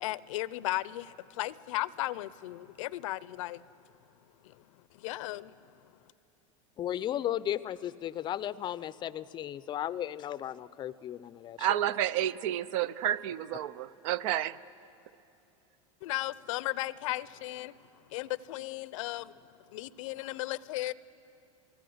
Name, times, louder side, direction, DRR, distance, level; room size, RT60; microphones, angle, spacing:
voice 1, 0.0-3.6 4.4-4.6 4.9-5.5 16.0-17.8 18.1-19.3 19.7-20.9, left 17 dB, 75° left, 19 dB, 0.6 m, -35 dB
voice 2, 6.8-11.7, left 11 dB, 25° left, 17 dB, 0.5 m, -35 dB
voice 3, 11.6-14.6, right 12 dB, 70° right, 17 dB, 0.6 m, -30 dB
28.5 x 19.0 x 7.9 m, 2.8 s
supercardioid pair, 135°, 17 cm